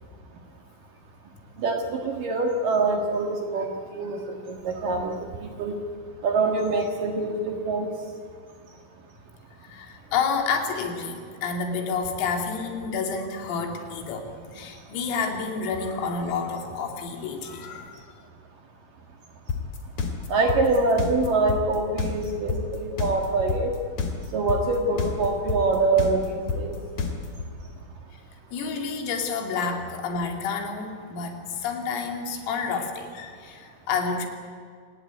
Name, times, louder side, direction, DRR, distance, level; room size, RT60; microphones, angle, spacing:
voice 1, 1.6-5.8 6.2-7.9 20.3-23.7 24.3-26.7, right 3 dB, 55° right, 3 dB, 2.6 m, -25 dB
voice 2, 9.6-18.0 28.5-34.3, left 5 dB, 85° left, 4 dB, 5.3 m, -29 dB
sound 1, 19.5-27.5, left 5 dB, 40° left, 3.0 m, -28 dB
26.0 x 19.0 x 9.3 m, 2.1 s
omnidirectional pair, 5.8 m